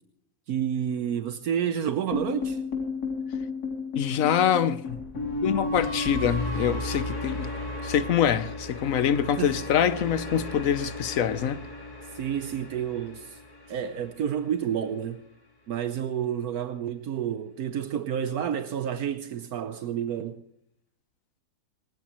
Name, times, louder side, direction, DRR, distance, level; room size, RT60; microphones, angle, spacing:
voice 1, 0.5-2.6 9.4-9.5 12.1-13.4 13.7-15.2 15.7-20.4, right 9 dB, 75° right, 1.2 m, -30 dB
sound 1, 2.1-14.3, left 2 dB, 85° left, 3.7 m, -34 dB
voice 2, 3.9-5.0 5.4-7.5 7.8-11.6, left 9 dB, 65° left, 1.2 m, -25 dB
19.0 x 19.0 x 3.1 m
omnidirectional pair, 1.6 m